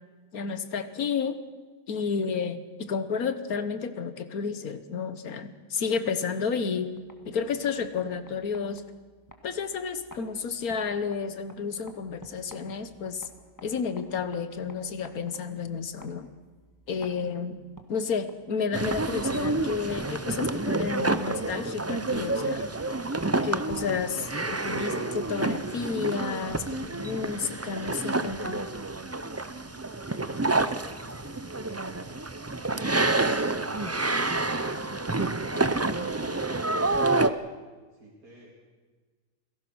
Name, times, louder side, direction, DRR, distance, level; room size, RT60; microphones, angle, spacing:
voice 1, 0.3-1.4 1.9-6.9 7.2-8.8 9.4-13.3 13.6-16.3 16.9-17.6 17.9-22.7 23.4-28.7, left 5 dB, 75° left, 12 dB, 1.7 m, -31 dB
sound 1, 6.8-20.5, left 1 dB, 10° left, 2.0 m, -54 dB
sound 2, 18.7-37.3, right 2 dB, 25° right, 0.3 m, -28 dB
voice 2, 29.9-32.0 37.9-38.6, right 1 dB, 80° right, -5 dB, 3.9 m, -52 dB
27.5 x 17.5 x 6.3 m, 1.4 s
omnidirectional pair, 1.6 m